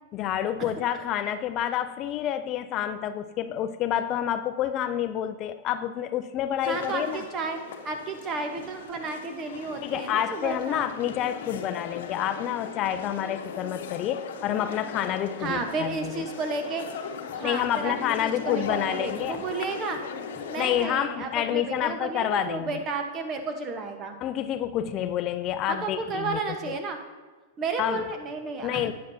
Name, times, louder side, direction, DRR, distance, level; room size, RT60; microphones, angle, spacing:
voice 1, 0.1-7.2 9.8-16.2 17.4-19.4 20.6-22.8 24.2-26.8 27.8-28.0 28.6-28.9, left 10 dB, 35° left, 11 dB, 0.3 m, -28 dB
sound 1, 6.6-20.9, left 6 dB, 70° left, 0.9 m, -38 dB
voice 2, 6.6-7.6 7.8-10.9 15.4-16.8 17.3-20.0 20.5-24.2 25.7-27.0 27.6-28.9, right 4 dB, 30° right, 5 dB, 1.1 m, -32 dB
11.5 x 8.6 x 2.7 m, 1.4 s
hypercardioid pair, 130°, 0 cm